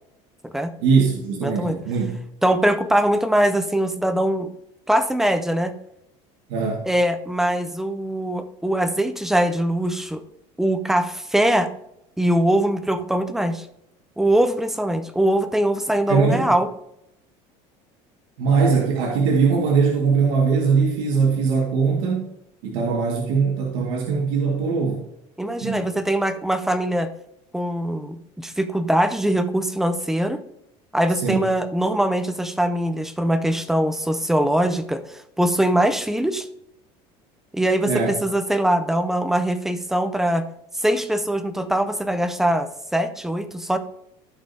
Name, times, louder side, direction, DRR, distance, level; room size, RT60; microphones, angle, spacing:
voice 1, 0.8-2.2 6.5-6.8 16.1-16.4 18.4-22.2 22.6-25.0 25.6-25.9 31.1-31.5 37.9-38.2, right 5 dB, 85° right, -2 dB, 1.9 m, -21 dB
voice 2, 1.4-1.8 2.4-4.5 4.9-5.8 6.9-10.2 10.6-11.7 12.2-13.7 14.2-16.7 25.4-27.1 27.5-30.4 30.9-36.5 37.5-40.5 40.8-43.8, right 1 dB, 5° right, 10 dB, 0.4 m, -22 dB
15.0 x 5.1 x 2.7 m, 0.81 s
cardioid pair, 175°, 14 cm